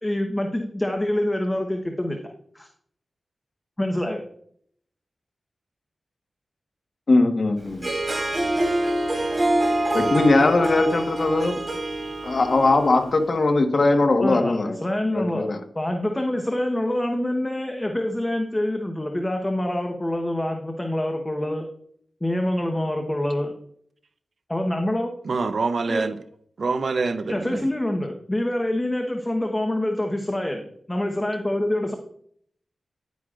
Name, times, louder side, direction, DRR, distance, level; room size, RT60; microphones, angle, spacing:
voice 1, 0.0-2.2 2.5-2.7 3.8-4.2 14.2-21.7 22.2-23.5 24.5-25.1 25.9-26.1 27.3-31.9, left 1 dB, 20° left, 1.1 m, -26 dB
voice 2, 7.1-7.9 9.9-11.6 12.2-14.8 15.1-15.6, left 2 dB, 55° left, 1.4 m, -20 dB
Harp, 7.7-13.1, right 1 dB, 30° right, 3.2 m, -25 dB
voice 3, 25.3-26.1 26.6-27.5, right 4 dB, 65° right, 0.6 m, -25 dB
10.5 x 9.2 x 2.5 m
wide cardioid pair, 75°, 0 cm